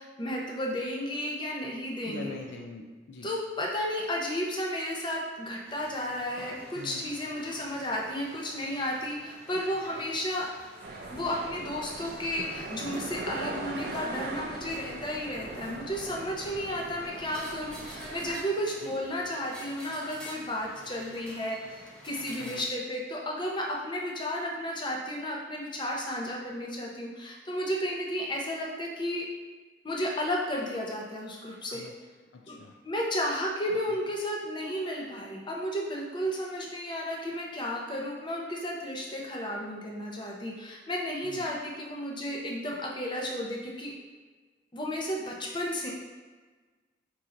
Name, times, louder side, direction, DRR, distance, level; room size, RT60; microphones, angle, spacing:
voice 1, 0.0-2.3 3.2-10.5 11.1-21.6 22.0-29.3 29.8-31.8 32.5-32.6 32.8-43.9 44.7-45.9, equal, 25° left, -2 dB, 0.6 m, -33 dB
voice 2, 2.0-3.3 6.7-7.1 18.8-18.9 22.4-22.7 31.7-31.9 32.3-32.8 41.2-41.5, left 3 dB, 70° left, 2 dB, 0.4 m, -43 dB
sound 1, 5.7-22.6, equal, 5° left, 1.0 m, -48 dB
sound 2, 10.8-18.4, right 2 dB, 60° right, 0.4 m, -40 dB
4.4 x 2.7 x 3.7 m, 1.4 s
head